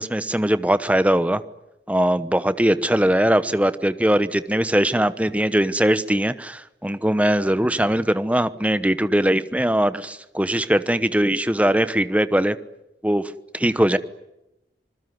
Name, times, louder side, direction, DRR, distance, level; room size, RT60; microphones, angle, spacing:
voice 1, 0.0-1.4 1.9-12.6 13.0-14.0, right 1 dB, 10° right, 13 dB, 1.0 m, -21 dB
26.5 x 21.0 x 9.5 m, 0.90 s
head